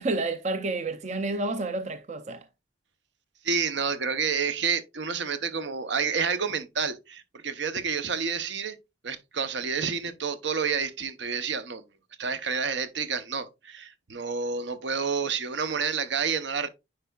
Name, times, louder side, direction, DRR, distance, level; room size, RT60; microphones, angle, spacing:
voice 1, 0.0-2.4, right 2 dB, 35° right, 0.5 m, -30 dB
voice 2, 3.4-8.8 9.0-11.8 12.2-16.7, right 5 dB, 70° right, 0.8 m, -29 dB
9.6 x 4.5 x 2.3 m
head